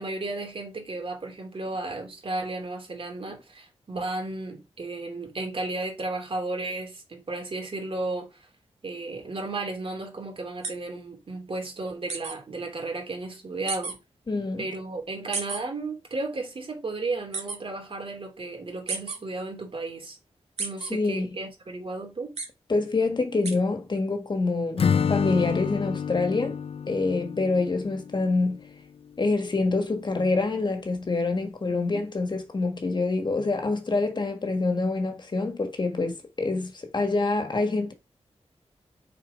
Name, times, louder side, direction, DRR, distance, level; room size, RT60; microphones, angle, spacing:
voice 1, 0.0-8.4 8.8-14.0 14.6-20.2 20.6-22.3 31.7-32.0, right 2 dB, 55° right, 3.1 m, -34 dB
sound 1, 10.6-10.7 12.1-12.3 13.7-13.9 15.3-15.6 17.3-17.6 18.9-19.2 20.6-20.9 22.4-22.5 23.4-23.5, right 4 dB, 75° right, 2.1 m, -31 dB
voice 2, 14.3-14.7 20.9-21.4 22.7-26.6 26.9-28.6 29.2-37.9, left 3 dB, 40° left, 1.7 m, -26 dB
Acoustic guitar / Strum, 24.8-28.7, left 7 dB, 60° left, 0.4 m, -28 dB
6.7 x 4.9 x 5.3 m
wide cardioid pair, 115°, 11 cm